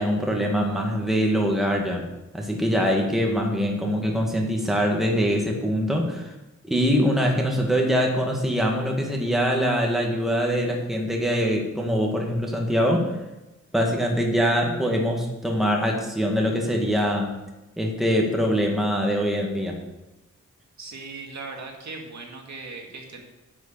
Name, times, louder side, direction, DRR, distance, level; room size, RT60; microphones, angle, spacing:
voice 1, 0.0-2.1 2.3-6.3 6.6-13.2 13.7-17.3 17.8-19.8, equal, ahead, 0 dB, 1.6 m, -23 dB
voice 2, 20.8-23.2, right 3 dB, 60° right, 1 dB, 2.2 m, -38 dB
10.5 x 6.3 x 8.2 m, 0.98 s
wide cardioid pair, 150°, 32 cm